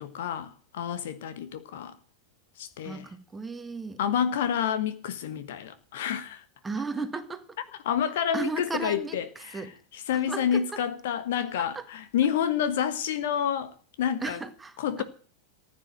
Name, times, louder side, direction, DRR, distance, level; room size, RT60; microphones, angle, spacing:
voice 1, 0.0-1.9 2.6-3.1 4.0-6.4 7.8-14.4 14.8-15.0, left 9 dB, 55° left, 1.4 m, -29 dB
voice 2, 2.8-4.0 6.6-7.4 8.3-9.2 9.5-9.7 10.3-10.8 11.6-11.8 14.2-15.0, right 4 dB, 10° right, 1.7 m, -35 dB
15.0 x 9.7 x 7.9 m
figure-of-eight pair, 90°, 0 cm